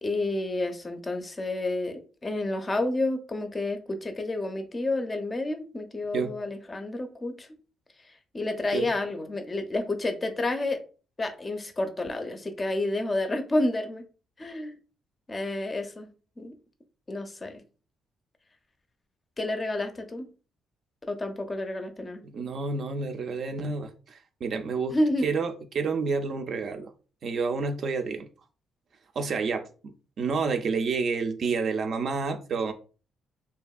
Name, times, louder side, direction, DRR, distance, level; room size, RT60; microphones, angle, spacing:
voice 1, 0.0-7.5 8.3-10.8 11.2-14.0 14.4-14.8 15.3-16.1 16.4-16.5 17.1-17.6 19.4-20.3 21.0-22.2 24.9-25.3, left 2 dB, 25° left, 0.5 m, -30 dB
voice 2, 22.2-25.0 25.2-26.9 27.2-28.3 29.2-32.7, right 4 dB, 55° right, 0.4 m, -29 dB
2.7 x 2.5 x 2.3 m
cardioid pair, 90°, 0 cm